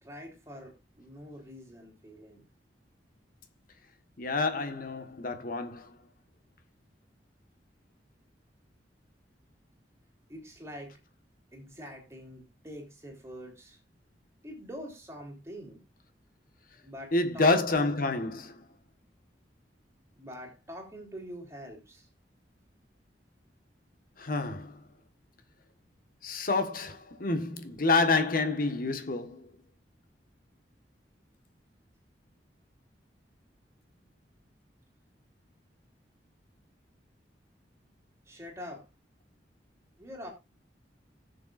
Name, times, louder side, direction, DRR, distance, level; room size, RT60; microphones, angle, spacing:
voice 1, 0.0-2.4 10.3-11.0 11.5-13.8 14.4-15.8 16.8-17.8 20.2-22.1 38.3-38.9 40.0-40.3, equal, 15° right, 3.1 m, -45 dB
voice 2, 4.2-5.9 17.1-18.6 24.2-24.8 26.2-29.5, left 3 dB, 55° left, 1.4 m, -28 dB
19.5 x 6.9 x 2.5 m
head